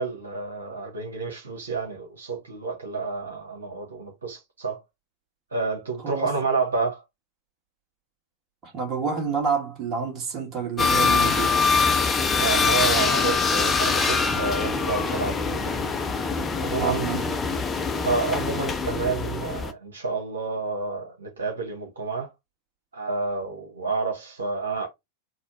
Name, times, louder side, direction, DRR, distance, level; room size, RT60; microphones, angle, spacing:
voice 1, 0.0-4.8 5.5-7.0 12.4-15.8 16.6-17.1 18.0-22.3 22.9-24.9, right 3 dB, 70° right, 1.3 m, -29 dB
voice 2, 8.6-11.6 16.7-17.2, right 6 dB, 30° right, 1.9 m, -28 dB
sound 1, 10.8-19.7, left 4 dB, 20° left, 0.6 m, -24 dB
4.1 x 2.3 x 4.2 m
figure-of-eight pair, 90°, 0 cm